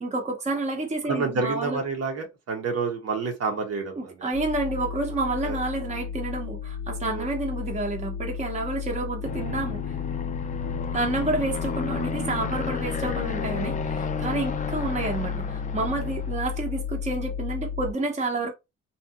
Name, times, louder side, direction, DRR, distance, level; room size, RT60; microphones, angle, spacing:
voice 1, 0.0-1.8 4.0-9.8 10.9-18.5, right 2 dB, 25° right, 0.8 m, -29 dB
voice 2, 1.1-4.1 5.4-5.6 7.1-7.3 14.2-14.4, right 4 dB, 55° right, 0.9 m, -29 dB
sound 1, 4.3-17.9, left 7 dB, 90° left, 0.5 m, -33 dB
Aircraft, 9.2-16.6, left 5 dB, 25° left, 0.4 m, -33 dB
2.7 x 2.3 x 2.3 m
cardioid pair, 90°, 30 cm